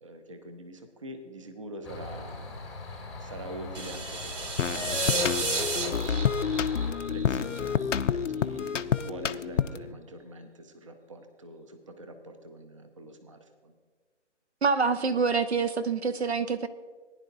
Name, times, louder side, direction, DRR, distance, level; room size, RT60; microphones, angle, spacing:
voice 1, 0.0-2.6 3.2-6.3 6.8-13.7, right 1 dB, 25° right, 6 dB, 0.7 m, -45 dB
sound 1, 1.8-6.9, left 3 dB, ahead, 1.0 m, -41 dB
sound 2, 3.7-7.8, right 3 dB, 80° right, 1.5 m, -32 dB
sound 3, 4.6-9.9, left 7 dB, 80° left, 0.6 m, -28 dB
voice 2, 14.6-16.7, right 5 dB, 60° right, 12 dB, 0.7 m, -26 dB
19.5 x 10.0 x 2.7 m, 1.5 s
figure-of-eight pair, 165°, 36 cm